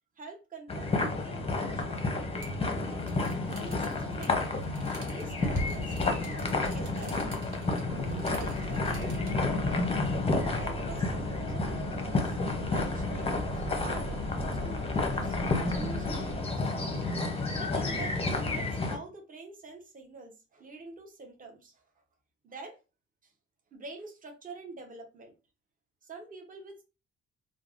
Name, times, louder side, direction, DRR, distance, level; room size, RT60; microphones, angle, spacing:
voice 1, 0.2-2.8 3.6-7.3 7.8-10.1 10.6-12.4 12.7-15.3 15.7-17.2 17.6-21.8 22.4-22.8 23.2-23.3 23.7-25.3 26.0-26.8, right 3 dB, 30° right, 2 dB, 0.8 m, -47 dB
sound 1, 0.7-19.0, left 3 dB, 20° left, 0.6 m, -31 dB
sound 2, 2.3-9.4, right 2 dB, 75° right, 1.0 m, -50 dB
sound 3, 7.9-16.4, right 4 dB, 60° right, 0.4 m, -41 dB
3.2 x 2.0 x 2.4 m, 0.31 s
cardioid pair, 90°, 30 cm